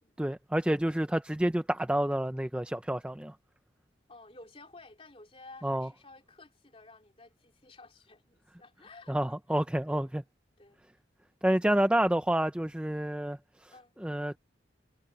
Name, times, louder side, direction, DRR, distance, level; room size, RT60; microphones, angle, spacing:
voice 1, 0.2-3.4 5.6-5.9 9.1-10.2 11.4-13.7 14.0-14.4, right 1 dB, 5° right, 0.4 m, -29 dB
voice 2, 4.1-9.4 9.9-10.2 10.6-10.8 11.6-11.8 13.7-13.9, left 2 dB, 30° left, 3.3 m, -53 dB
head